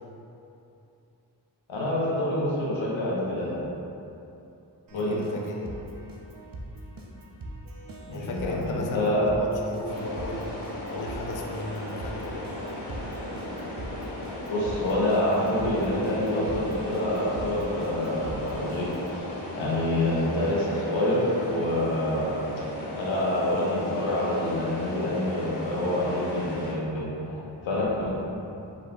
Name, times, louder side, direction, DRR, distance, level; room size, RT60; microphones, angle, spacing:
voice 1, 1.7-3.6 4.9-5.2 8.1-9.3 14.5-18.9 19.6-22.3 23.0-27.1 27.6-28.1, left 1 dB, 85° left, -6 dB, 1.0 m, -27 dB
voice 2, 4.9-5.7 8.1-10.5 10.9-12.8 19.5-19.8 27.2-27.5, left 2 dB, 45° left, 1 dB, 0.5 m, -36 dB
Keyboard (musical), 4.9-19.2, right 1 dB, 50° right, 0.7 m, -42 dB
sound 1, 9.8-26.7, left 1 dB, 60° left, 1.0 m, -36 dB
5.1 x 3.8 x 2.3 m, 2.8 s
cardioid pair, 45°, 45 cm